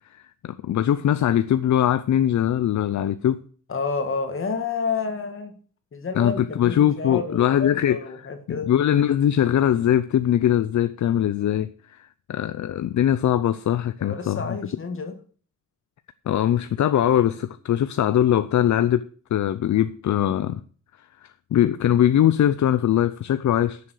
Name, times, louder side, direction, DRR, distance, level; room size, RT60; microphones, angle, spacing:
voice 1, 0.1-3.4 6.2-8.0 8.5-14.4 16.3-20.6 21.2-23.8, left 11 dB, 65° left, 0.6 m, -21 dB
voice 2, 3.7-5.5 5.9-8.7 14.0-15.2, left 4 dB, 40° left, 2.1 m, -29 dB
11.0 x 7.1 x 6.5 m
wide cardioid pair, 175°, 31 cm